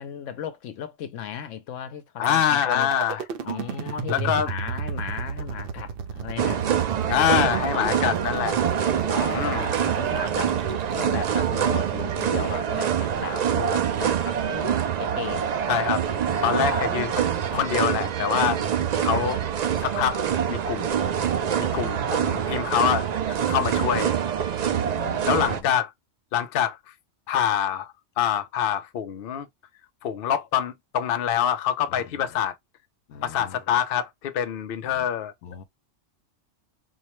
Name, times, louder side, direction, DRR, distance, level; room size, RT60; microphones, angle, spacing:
voice 1, 0.0-2.9 3.4-6.6 7.0-7.3 7.7-8.5 8.9-10.6 10.9-15.5 16.4-16.9 17.5-17.9 18.4-19.3 21.7-22.8 23.8-24.2 24.7-25.7 31.9-32.0 33.1-33.6 34.8-35.1 35.4-35.6, left 9 dB, 80° left, 1.0 m, -37 dB
voice 2, 2.2-3.2 4.1-4.5 7.1-8.6 9.3-9.7 15.7-16.1 16.4-18.6 19.0-19.4 19.8-21.0 21.6-24.2 25.3-25.9 26.3-26.8 27.3-29.5 30.0-32.6 33.2-35.3, left 9 dB, 60° left, 0.7 m, -25 dB
sound 1, 2.2-12.2, right 6 dB, 55° right, 0.7 m, -34 dB
sound 2, 6.4-25.6, right 8 dB, 90° right, 0.3 m, -25 dB
4.3 x 2.1 x 2.9 m
omnidirectional pair, 1.3 m